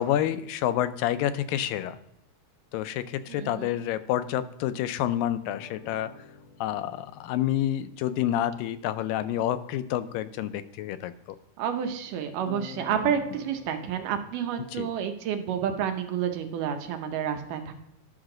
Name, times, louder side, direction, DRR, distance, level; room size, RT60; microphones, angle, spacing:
voice 1, 0.0-2.0 2.7-6.1 6.6-11.4 14.7-14.9, left 11 dB, 85° left, 12 dB, 2.2 m, -28 dB
voice 2, 3.3-3.7 11.6-17.7, right 8 dB, 75° right, 6 dB, 2.3 m, -30 dB
sound 1, 5.6-8.2 12.5-14.2, left 7 dB, 70° left, 1.8 m, -45 dB
11.0 x 6.3 x 3.8 m, 0.82 s
omnidirectional pair, 4.0 m